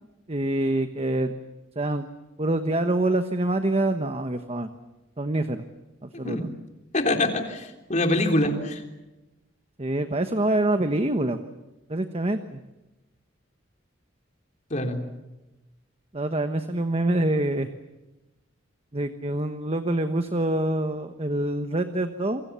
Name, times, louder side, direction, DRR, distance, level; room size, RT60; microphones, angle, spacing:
voice 1, 0.3-1.3 1.7-2.1 2.4-4.7 5.2-5.6 6.0-6.5 9.8-11.4 11.9-12.6 16.1-17.7 18.9-22.4, right 1 dB, 30° right, 8 dB, 1.2 m, -25 dB
voice 2, 6.9-8.8 14.7-15.0, left 1 dB, 40° left, 4 dB, 3.5 m, -24 dB
28.5 x 23.5 x 7.0 m, 1.1 s
head